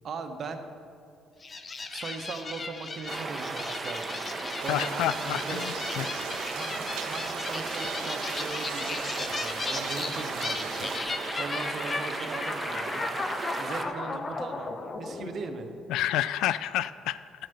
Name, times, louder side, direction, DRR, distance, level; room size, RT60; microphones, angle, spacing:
voice 1, 0.0-0.7 1.9-4.1 4.6-5.8 6.5-10.9 11.4-13.0 13.6-15.7, right 4 dB, 55° right, 7 dB, 1.0 m, -39 dB
sound 1, 1.4-16.1, left 3 dB, 35° left, 0.9 m, -36 dB
sound 2, 3.1-13.9, right 3 dB, 35° right, 0.9 m, -36 dB
sound 3, 4.6-11.0, right 8 dB, 85° right, 0.8 m, -40 dB
voice 2, 4.7-6.1 15.9-17.2, left 12 dB, 80° left, 16 dB, 0.3 m, -29 dB
11.0 x 6.5 x 6.8 m, 2.5 s
supercardioid pair, 75°, 0 cm